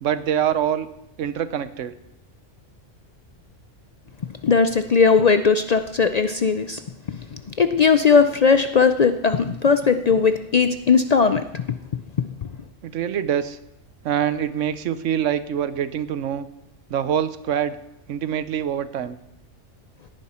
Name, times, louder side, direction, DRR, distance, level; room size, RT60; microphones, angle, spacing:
voice 1, 0.0-0.9 1.2-1.9 12.8-13.6 14.0-16.5 16.9-17.8 18.1-19.2, right 9 dB, 90° right, 14 dB, 1.1 m, -24 dB
voice 2, 4.4-6.8 7.1-11.6 12.2-12.3, left 5 dB, 55° left, 9 dB, 0.4 m, -18 dB
17.5 x 10.0 x 4.3 m, 0.85 s
omnidirectional pair, 1.2 m